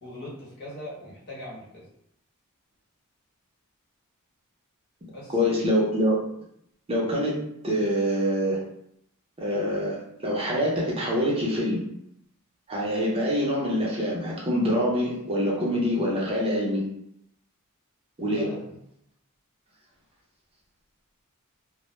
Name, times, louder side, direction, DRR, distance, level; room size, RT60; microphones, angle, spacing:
voice 1, 0.0-1.9 5.1-5.5 18.3-18.8, left 1 dB, 50° left, -6 dB, 0.9 m, -40 dB
voice 2, 5.3-6.2 6.9-7.4 7.6-8.6 9.4-11.8 12.7-16.8 18.2-18.5, equal, 25° right, -4 dB, 0.5 m, -25 dB
2.1 x 2.1 x 3.0 m, 0.76 s
head